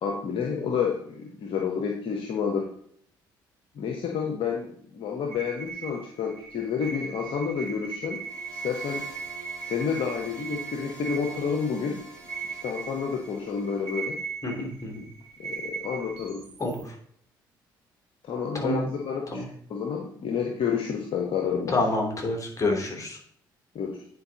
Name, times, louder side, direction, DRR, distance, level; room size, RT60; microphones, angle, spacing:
voice 1, 0.0-2.7 3.7-8.2 8.5-9.0 9.6-12.0 12.5-14.2 15.4-16.5 18.2-19.4 19.7-21.8 23.7-24.0, left 6 dB, 55° left, 2 dB, 1.2 m, -29 dB
sound 1, 5.3-16.8, right 5 dB, 70° right, 1.4 m, -39 dB
sound 2, 8.2-14.0, equal, 10° left, 3.9 m, -47 dB
voice 2, 14.4-15.0 16.6-16.9 18.5-18.9 19.3-19.5 21.7-23.2, left 2 dB, 30° left, 0 dB, 3.2 m, -28 dB
9.5 x 4.9 x 4.1 m, 0.64 s
hypercardioid pair, 50°, 11 cm